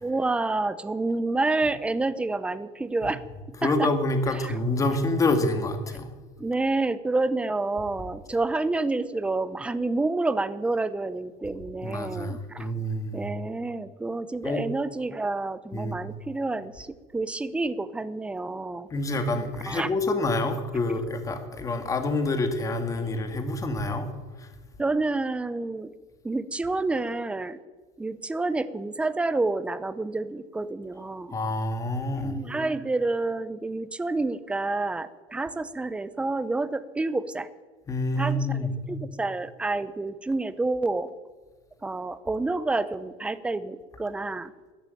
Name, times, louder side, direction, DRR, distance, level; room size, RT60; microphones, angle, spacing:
voice 1, 0.0-3.2 3.6-3.9 4.3-4.6 6.4-12.7 13.1-18.9 19.7-19.9 21.4-21.5 24.8-25.9 26.2-27.6 28.0-31.4 32.2-37.5 38.2-41.1 41.8-44.5, right 2 dB, 5° right, 14 dB, 0.6 m, -29 dB
voice 2, 3.6-6.1 11.8-13.2 14.4-14.6 15.7-16.0 18.9-24.1 24.4-24.5 31.3-32.3 37.9-38.7, left 2 dB, 20° left, 7 dB, 1.9 m, -27 dB
13.5 x 11.0 x 9.1 m, 1.3 s
cardioid pair, 150°, 17 cm